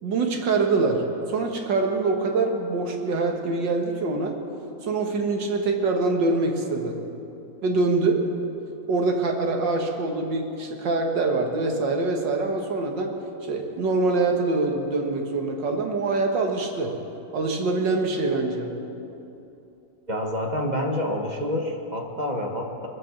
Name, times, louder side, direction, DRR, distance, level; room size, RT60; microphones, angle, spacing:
voice 1, 0.0-4.4 4.8-7.0 7.6-8.3 8.9-13.1 13.4-17.0 17.3-18.7, right 3 dB, 85° right, 3 dB, 2.1 m, -24 dB
voice 2, 20.1-22.9, left 1 dB, 25° right, 1 dB, 1.3 m, -28 dB
22.5 x 7.8 x 7.1 m, 2.9 s
omnidirectional pair, 1.9 m